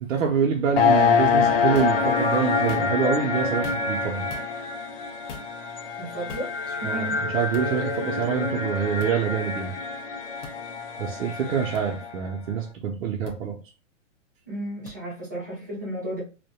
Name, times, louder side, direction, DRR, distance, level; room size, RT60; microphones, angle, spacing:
voice 1, 0.0-4.3 6.8-9.7 11.0-13.6, right 7 dB, 85° right, 0.6 m, -26 dB
sound 1, 0.8-12.2, left 5 dB, 50° left, 0.4 m, -26 dB
Boxing - Sounds of Block, 1.7-2.0 2.6-3.1 3.6-4.0 4.3-4.5 5.3-5.5 6.3-6.5 7.5-7.7 9.0-9.2 10.4-10.6 11.7-11.8 13.3-13.4 14.9-15.0, left 4 dB, 65° left, 0.8 m, -39 dB
voice 2, 6.0-7.2 14.5-16.2, right 1 dB, 15° right, 0.3 m, -34 dB
2.2 x 2.1 x 2.7 m
hypercardioid pair, 160°, 39 cm